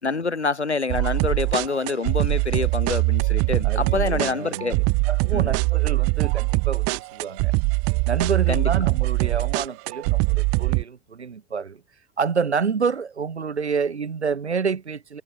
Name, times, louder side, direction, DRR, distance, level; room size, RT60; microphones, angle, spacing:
voice 1, 0.0-4.8 5.3-5.5 8.5-8.7, left 4 dB, 85° left, 5.3 m, -26 dB
sound 1, 0.9-10.8, right 33 dB, 45° right, 4.7 m, -22 dB
voice 2, 3.6-4.7 5.1-7.6 8.1-11.8 12.2-15.2, right 5 dB, 80° right, 3.9 m, -28 dB
figure-of-eight pair, 85°, 33 cm